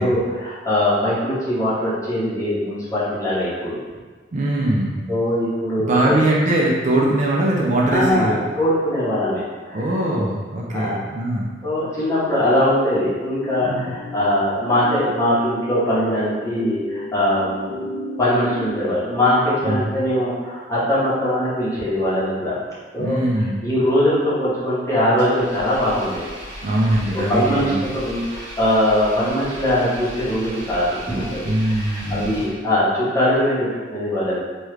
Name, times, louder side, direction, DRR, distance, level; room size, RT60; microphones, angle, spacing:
voice 1, 0.0-3.8 5.1-6.2 7.9-9.4 9.7-9.9 10.7-11.0 11.6-17.9 18.2-22.6 22.9-23.2 23.6-26.2 27.1-34.4, left 1 dB, 15° left, -10 dB, 0.9 m, -21 dB
voice 2, 4.3-5.0 5.8-8.4 9.7-11.5 13.6-14.0 19.6-20.0 23.0-23.6 26.6-27.8 31.4-32.4, right 1 dB, 40° right, -4 dB, 0.4 m, -21 dB
sound 1, 12.9-18.7, left 3 dB, 85° left, 0.7 m, -34 dB
Engine, 25.2-32.9, equal, 80° right, 0.8 m, -36 dB
3.0 x 2.3 x 3.2 m, 1.4 s
head